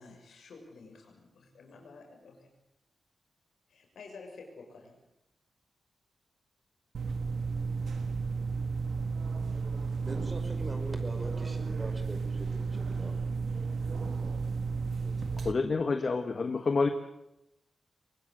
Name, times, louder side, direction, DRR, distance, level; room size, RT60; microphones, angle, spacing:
voice 1, 0.0-2.5 3.7-5.0, left 3 dB, 85° left, 3 dB, 6.4 m, -51 dB
sound 1, 6.9-15.5, right 4 dB, 70° right, 1.8 m, -33 dB
voice 2, 9.9-13.3 15.0-15.4, right 1 dB, 25° right, 6 dB, 5.5 m, -44 dB
voice 3, 15.4-16.9, left 4 dB, 50° left, 7 dB, 1.4 m, -28 dB
23.5 x 20.5 x 7.9 m, 0.87 s
cardioid pair, 85°, 0 cm